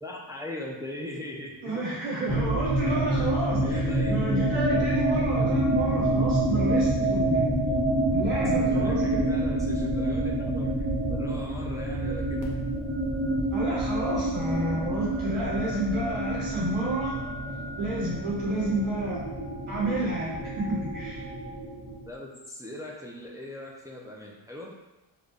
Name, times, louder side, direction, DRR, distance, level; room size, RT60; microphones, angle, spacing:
voice 1, 0.0-1.9 2.8-3.3 3.6-4.5 8.3-12.5 22.1-24.8, left 1 dB, 10° right, -2 dB, 0.3 m, -40 dB
voice 2, 1.6-7.4 8.1-9.2 13.5-17.1 17.8-19.3 19.7-21.2, right 1 dB, 90° right, -7 dB, 1.4 m, -30 dB
sound 1, 2.3-22.1, right 1 dB, 40° right, 0.7 m, -27 dB
3.8 x 2.2 x 3.4 m, 1.1 s
wide cardioid pair, 120°, 47 cm